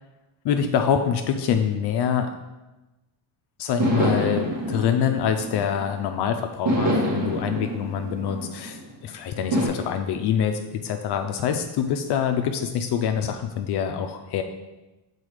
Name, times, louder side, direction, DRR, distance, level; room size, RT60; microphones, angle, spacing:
voice 1, 0.4-2.4 3.6-14.4, left 8 dB, 55° left, 6 dB, 0.6 m, -25 dB
sound 1, 3.8-6.1 6.7-8.9 9.5-9.7, equal, 65° right, 2.3 m, -26 dB
6.4 x 4.1 x 5.0 m, 1.1 s
cardioid pair, 130°, 48 cm